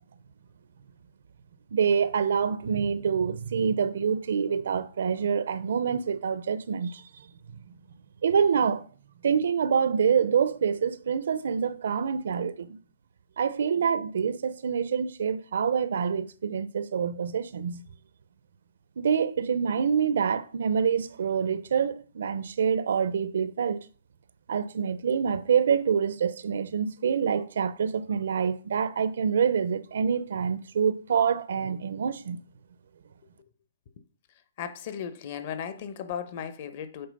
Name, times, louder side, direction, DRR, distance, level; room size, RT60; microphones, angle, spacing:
voice 1, 1.7-7.0 7.5-7.6 8.2-8.9 9.2-12.8 13.4-17.8 19.0-23.8 24.5-32.4, right 7 dB, 65° right, 0.6 m, -26 dB
voice 2, 34.6-37.1, left 8 dB, 35° left, 0.9 m, -36 dB
7.8 x 4.1 x 5.3 m
hypercardioid pair, 170°, 0 cm